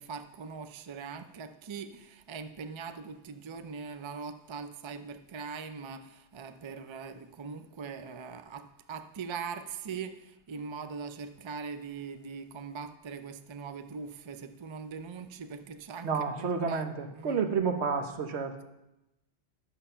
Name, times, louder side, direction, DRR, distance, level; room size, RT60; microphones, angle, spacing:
voice 1, 0.0-17.5, right 5 dB, 35° right, 9 dB, 0.5 m, -41 dB
voice 2, 16.0-18.6, right 5 dB, 75° right, 7 dB, 1.3 m, -30 dB
11.0 x 7.2 x 5.6 m, 0.94 s
omnidirectional pair, 1.1 m